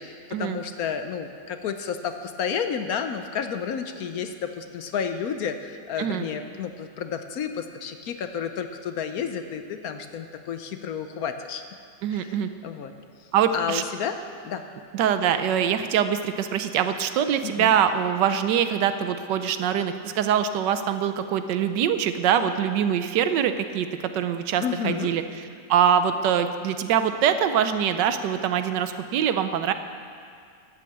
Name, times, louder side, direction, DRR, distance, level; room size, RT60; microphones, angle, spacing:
voice 1, 0.0-11.6 12.1-12.9 13.5-14.2 14.4-14.6 17.4-17.7 24.6-25.1, left 7 dB, 65° left, 8 dB, 1.0 m, -31 dB
voice 2, 12.0-12.5 13.3-13.8 14.9-25.2 25.7-29.7, right 8 dB, 85° right, 10 dB, 1.3 m, -23 dB
11.5 x 9.2 x 7.3 m, 2.2 s
omnidirectional pair, 1.9 m